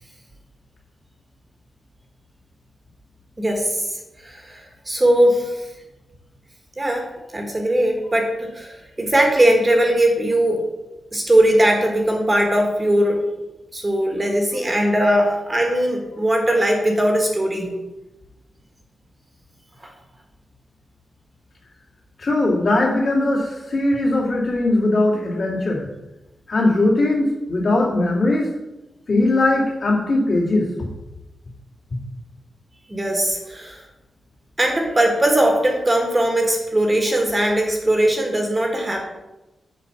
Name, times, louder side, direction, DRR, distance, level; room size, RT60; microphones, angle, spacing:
voice 1, 3.4-5.7 6.8-7.1 7.3-10.6 11.1-13.2 13.7-17.7 19.8-19.9 32.9-33.8 34.6-39.0, right 1 dB, 20° right, 2 dB, 1.3 m, -19 dB
voice 2, 22.2-25.8 26.5-28.5 29.1-30.9, left 2 dB, 50° left, -4 dB, 2.6 m, -19 dB
7.2 x 4.3 x 6.8 m, 1.0 s
wide cardioid pair, 130°, 0 cm